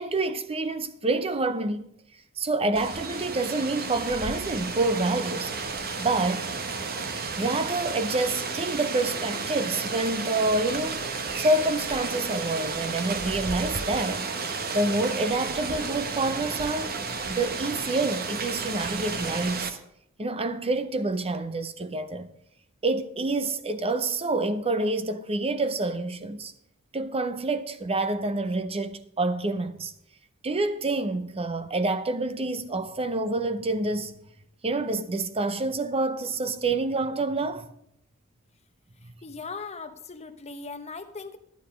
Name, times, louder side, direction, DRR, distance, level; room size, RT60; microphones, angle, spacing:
voice 1, 0.0-1.9 2.4-5.5 6.0-6.5 7.4-11.0 11.4-14.3 14.7-16.9 17.3-19.8 20.2-22.3 22.8-26.5 26.9-29.9 30.4-34.2 34.6-37.7 39.0-39.1, right 2 dB, 25° right, 0.7 m, -27 dB
Rain, 2.8-19.7, right 4 dB, 45° right, 1.0 m, -32 dB
voice 2, 39.0-41.4, left 4 dB, 30° left, 0.9 m, -39 dB
11.5 x 9.9 x 5.2 m
head